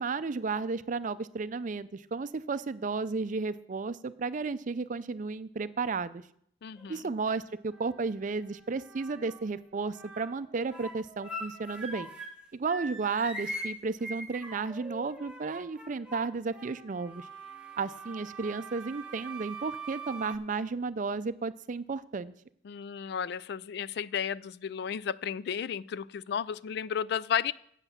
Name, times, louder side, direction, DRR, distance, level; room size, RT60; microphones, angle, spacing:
voice 1, 0.0-6.2 6.9-12.1 12.5-17.3 17.8-22.3, right 4 dB, 45° right, 15 dB, 0.5 m, -33 dB
voice 2, 6.6-7.1 22.6-27.5, left 8 dB, 65° left, 19 dB, 0.3 m, -33 dB
sound 1, 6.8-7.3 7.7-9.5 9.9-12.4 12.7-20.3, right 1 dB, 5° right, 1.2 m, -43 dB
8.2 x 8.0 x 7.0 m, 0.68 s
head